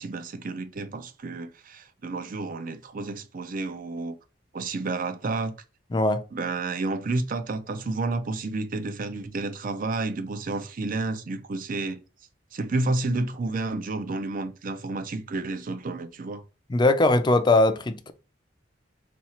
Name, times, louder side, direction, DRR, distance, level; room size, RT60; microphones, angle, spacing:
voice 1, 0.0-4.2 4.5-5.5 6.3-12.0 12.5-16.4, right 3 dB, 50° right, 0.5 m, -30 dB
voice 2, 5.9-6.2 16.7-18.1, left 2 dB, 25° left, 0.4 m, -20 dB
4.3 x 2.4 x 4.3 m
head